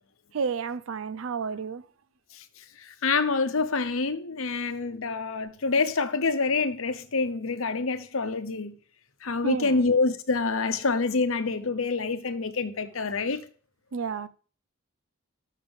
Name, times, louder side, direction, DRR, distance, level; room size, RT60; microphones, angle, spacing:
voice 1, 0.3-1.9 9.4-9.9 13.9-14.3, right 5 dB, 70° right, 0.4 m, -31 dB
voice 2, 3.0-8.7 9.2-13.4, left 4 dB, 75° left, 0.9 m, -26 dB
7.1 x 6.6 x 5.1 m
head